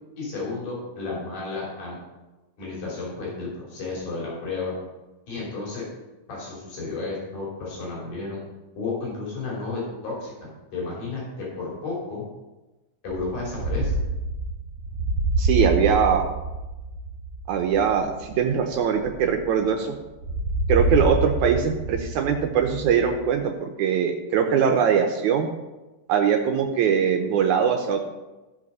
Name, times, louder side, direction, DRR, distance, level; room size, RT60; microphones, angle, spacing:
voice 1, 0.2-2.0 2.6-4.7 5.3-5.8 6.3-8.4 8.8-12.2 13.0-13.9, left 3 dB, 75° left, -5 dB, 4.6 m, -32 dB
sound 1, 13.1-19.7 20.2-23.4, right 2 dB, 55° right, 1.7 m, -27 dB
voice 2, 15.4-16.2 17.5-20.0 20.7-25.5 26.1-28.0, right 7 dB, 75° right, 3 dB, 2.1 m, -22 dB
15.0 x 5.3 x 5.4 m, 1.1 s
omnidirectional pair, 3.6 m